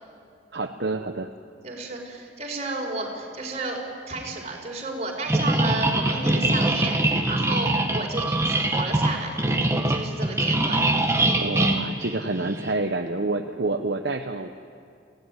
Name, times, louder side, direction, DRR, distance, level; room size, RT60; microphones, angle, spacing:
voice 1, 0.5-1.3 11.4-14.5, right 2 dB, 55° right, 5 dB, 0.9 m, -28 dB
voice 2, 1.6-3.8 4.1-9.4 9.9-10.9, right 2 dB, 35° right, 0 dB, 4.7 m, -32 dB
sound 1, 5.3-12.7, right 1 dB, 15° right, 1.5 m, -23 dB
27.5 x 16.5 x 9.8 m, 2.3 s
head